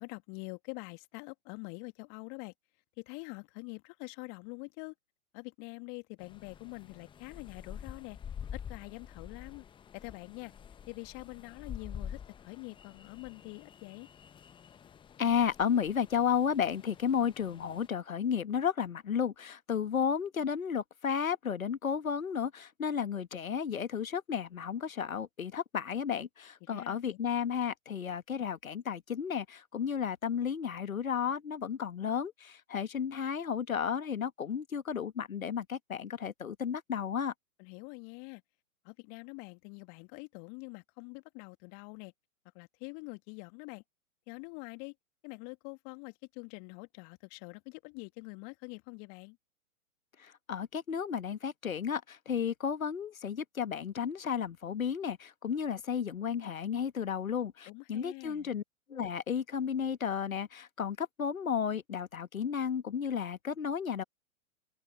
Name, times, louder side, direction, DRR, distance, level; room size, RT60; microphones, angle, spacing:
voice 1, 0.0-2.5 3.0-4.9 5.3-8.2 8.5-9.6 9.9-10.5 10.9-12.2 12.4-14.1 26.6-27.2 37.6-38.4 38.8-42.1 42.5-43.8 44.3-44.9 45.2-49.4 57.7-58.5, left 37 dB, 35° left, 2.6 m, -45 dB
sound 1, 6.2-17.9, left 8 dB, 10° left, 1.0 m, -48 dB
voice 2, 15.2-37.3 50.2-58.6 58.9-64.0, left 7 dB, 75° left, 1.5 m, -33 dB
figure-of-eight pair, 115°, 41 cm